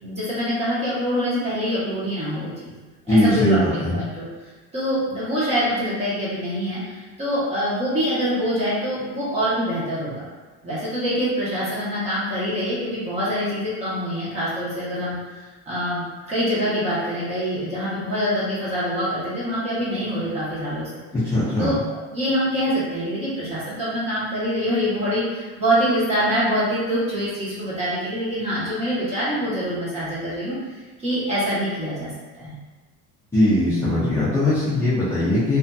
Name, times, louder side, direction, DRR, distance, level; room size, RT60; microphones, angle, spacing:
voice 1, 0.0-2.8 3.1-3.6 3.9-4.3 4.7-10.3 10.6-15.2 15.7-20.9 21.6-32.6, equal, 20° right, -9 dB, 0.8 m, -25 dB
voice 2, 3.1-4.0 21.1-21.8 33.3-35.6, left 1 dB, 10° left, -14 dB, 0.5 m, -20 dB
2.5 x 2.5 x 2.2 m, 1.3 s
cardioid pair, 160°, 32 cm